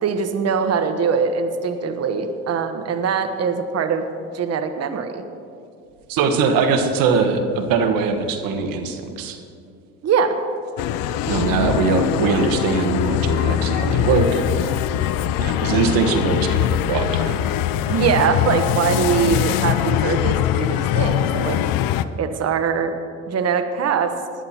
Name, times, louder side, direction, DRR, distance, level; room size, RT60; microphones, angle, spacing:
voice 1, 0.0-4.0 4.3-5.2 10.0-10.4 17.9-21.6 22.2-22.9 23.3-24.2, right 6 dB, 40° right, 8 dB, 1.1 m, -22 dB
voice 2, 6.1-9.4 11.3-14.7 15.4-17.4 17.8-17.9, right 4 dB, 60° right, 6 dB, 1.4 m, -21 dB
sound 1, 10.8-22.0, left 11 dB, 60° left, 0.6 m, -22 dB
20.0 x 11.0 x 2.9 m, 2.4 s
hypercardioid pair, 70°, 38 cm